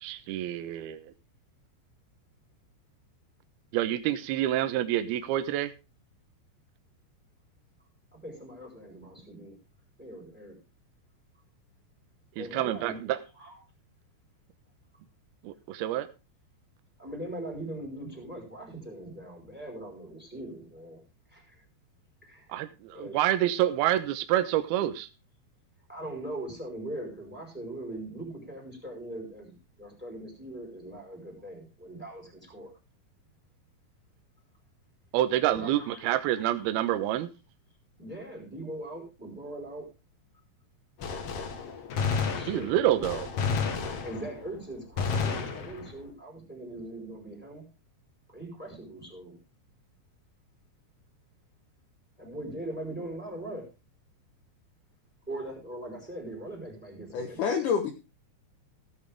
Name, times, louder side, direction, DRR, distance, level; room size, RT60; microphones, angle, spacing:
voice 1, 0.0-1.0 3.7-5.7 12.4-13.2 15.4-16.1 22.5-25.1 35.1-37.3 42.5-43.3, right 13 dB, 75° right, 11 dB, 2.6 m, -27 dB
voice 2, 8.1-9.6 10.0-10.6 12.4-13.6 17.0-21.0 21.3-21.6 22.2-23.2 25.9-32.7 35.4-36.7 38.0-39.9 42.3-43.2 44.0-47.6 48.3-49.4 52.2-53.6 55.3-57.5, right 1 dB, ahead, 2 dB, 4.3 m, -41 dB
Gunshot gunfire, 41.0-44.5 45.0-46.1, left 5 dB, 80° left, 1.3 m, -31 dB
voice 3, 57.1-57.9, left 6 dB, 65° left, 4 dB, 2.1 m, -27 dB
16.5 x 8.7 x 3.5 m, 0.30 s
omnidirectional pair, 5.2 m